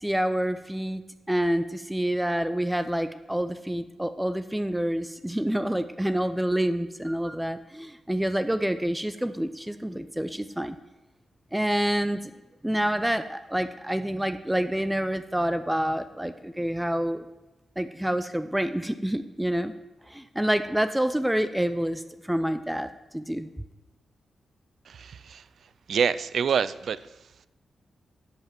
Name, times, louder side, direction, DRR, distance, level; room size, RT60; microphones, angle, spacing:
voice 1, 0.0-10.8 11.5-12.3 12.6-17.2 17.8-19.7 20.1-22.9 23.1-23.5, right 1 dB, 5° right, 10 dB, 0.5 m, -27 dB
voice 2, 24.9-25.4 25.9-27.0, right 7 dB, 70° right, 16 dB, 0.4 m, -26 dB
11.0 x 5.5 x 5.9 m, 1.0 s
cardioid pair, 85°, 0 cm